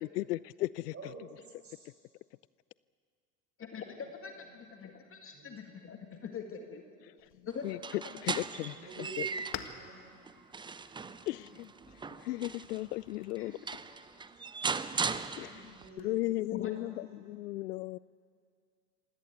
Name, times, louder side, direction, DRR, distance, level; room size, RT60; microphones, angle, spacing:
voice 1, 0.2-0.9 7.6-7.8 8.2-8.7 11.3-11.7 12.2-13.5 15.4-15.6 16.0-18.0, left 17 dB, 75° left, 21 dB, 0.5 m, -35 dB
voice 2, 0.9-1.3 1.6-1.9 4.4-4.9 5.3-5.6 8.7-10.1 15.4-17.0, right 4 dB, 30° right, 1 dB, 7.4 m, -50 dB
voice 3, 3.6-6.8 7.5-7.6 13.4-13.5 16.5-16.7, left 6 dB, 25° left, 4 dB, 2.0 m, -43 dB
sound 1, 7.2-16.2, left 11 dB, 45° left, 1.7 m, -52 dB
sound 2, 7.7-9.8 10.3-12.8 13.4-13.5 13.7-15.9, right 5 dB, 10° right, 0.6 m, -38 dB
26.5 x 17.0 x 8.1 m, 2.2 s
hypercardioid pair, 90°, 48 cm